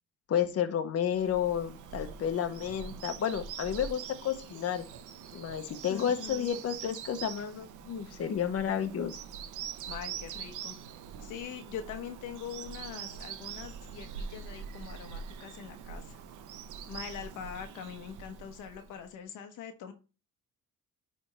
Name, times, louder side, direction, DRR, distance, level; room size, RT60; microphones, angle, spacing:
voice 1, 0.3-4.8 5.3-9.2, left 9 dB, 50° left, 7 dB, 1.1 m, -31 dB
Bird vocalization bird call bird song, 1.1-19.1, right 7 dB, 85° right, 0.9 m, -44 dB
voice 2, 5.9-6.5 9.9-10.7 11.2-16.2 16.9-19.9, left 8 dB, 85° left, 6 dB, 1.2 m, -43 dB
10.0 x 3.6 x 4.3 m, 0.33 s
cardioid pair, 90°, 30 cm